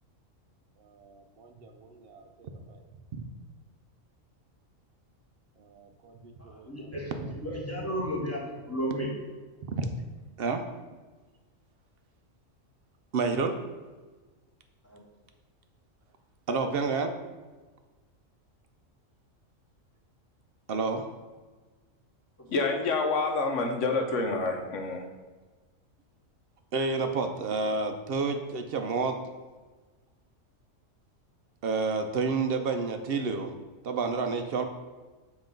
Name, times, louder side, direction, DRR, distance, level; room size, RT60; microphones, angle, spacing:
voice 1, 0.9-2.8 5.6-7.9 8.3-8.4 9.7-9.9 10.4-10.6 13.1-13.5 16.5-17.1 20.7-21.0 26.7-29.2 31.6-33.5 33.8-34.6, right 4 dB, 60° right, 0.7 m, -30 dB
voice 2, 6.5-7.1 7.4-9.1 14.9-15.0 22.4-22.5, equal, 10° left, 1.3 m, -33 dB
voice 3, 22.5-25.0, left 3 dB, 70° left, 1.0 m, -28 dB
7.7 x 3.0 x 5.1 m
omnidirectional pair, 1.4 m